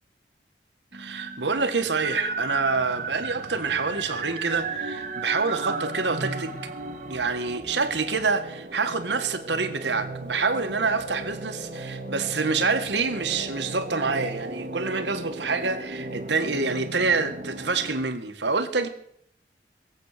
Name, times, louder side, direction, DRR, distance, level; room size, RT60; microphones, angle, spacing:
sound 1, 0.9-18.0, right 3 dB, 45° right, 1.6 m, -35 dB
voice 1, 0.9-6.5 7.1-18.9, right 4 dB, 85° right, 1.7 m, -27 dB
21.0 x 8.1 x 6.7 m
head